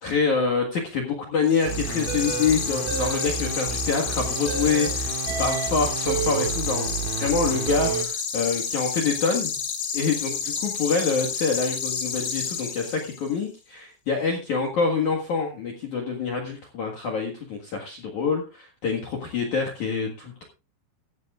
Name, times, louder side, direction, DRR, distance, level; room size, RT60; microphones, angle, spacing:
voice 1, 0.0-5.1 5.4-9.6 9.9-20.4, left 5 dB, 55° left, 3 dB, 2.2 m, -26 dB
sound 1, 1.4-13.3, left 6 dB, 85° left, 4.5 m, -30 dB
sound 2, 1.6-8.1, right 7 dB, 80° right, 4.5 m, -30 dB
15.5 x 13.0 x 2.4 m, 0.31 s
omnidirectional pair, 5.7 m